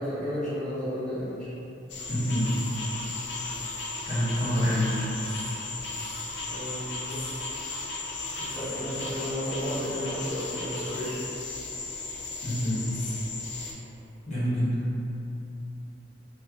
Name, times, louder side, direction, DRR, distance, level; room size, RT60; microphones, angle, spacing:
voice 1, 0.0-1.5 6.5-7.4 8.4-11.2, equal, 5° left, -15 dB, 0.9 m, -33 dB
sound 1, 1.9-13.7, left 3 dB, 60° left, 0.5 m, -36 dB
voice 2, 2.1-2.5 4.0-5.1 12.4-12.8 14.3-14.8, equal, 35° left, -10 dB, 1.2 m, -26 dB
3.3 x 2.5 x 3.5 m, 2.9 s
head